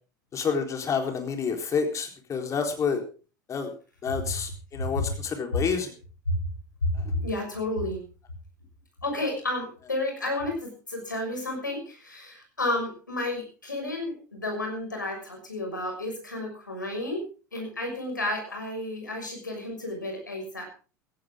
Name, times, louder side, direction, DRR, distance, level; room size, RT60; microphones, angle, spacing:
voice 1, 0.3-3.0 3.5-3.7 4.0-5.9, left 6 dB, 30° left, 4 dB, 4.0 m, -28 dB
voice 2, 6.8-8.0 9.0-17.2 17.5-20.6, left 1 dB, 90° left, 3 dB, 6.1 m, -31 dB
16.0 x 16.0 x 3.7 m, 0.37 s
figure-of-eight pair, 75°, 10 cm